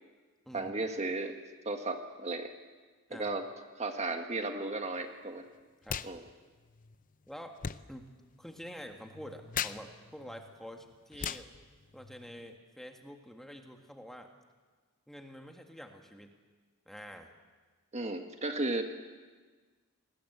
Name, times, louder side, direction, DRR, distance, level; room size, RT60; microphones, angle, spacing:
voice 1, 0.5-1.3 1.6-2.5 3.1-3.4 3.8-5.4 6.0-6.2 11.2-11.3 17.9-18.8, right 2 dB, 30° right, 5 dB, 1.6 m, -34 dB
sound 1, 5.8-6.1 6.4-12.6, left 7 dB, 40° left, 0.7 m, -42 dB
voice 2, 7.3-7.6 7.9-8.1 8.4-11.5 11.9-14.3 15.1-16.3 16.9-17.3, equal, ahead, 4 dB, 1.7 m, -47 dB
27.5 x 20.0 x 8.0 m, 1.4 s
head